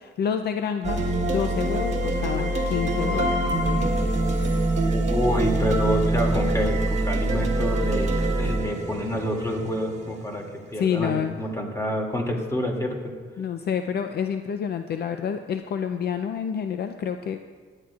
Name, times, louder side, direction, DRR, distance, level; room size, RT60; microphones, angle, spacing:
voice 1, 0.0-4.1 4.4-4.7 10.8-11.4 13.4-17.4, left 7 dB, 55° left, 7 dB, 0.5 m, -29 dB
sound 1, 0.8-10.9, right 1 dB, 35° right, 1.6 m, -25 dB
voice 2, 4.8-10.4 10.7-13.1, equal, 15° left, 0 dB, 2.5 m, -28 dB
17.5 x 11.0 x 2.4 m, 1.5 s
cardioid pair, 90°, 20 cm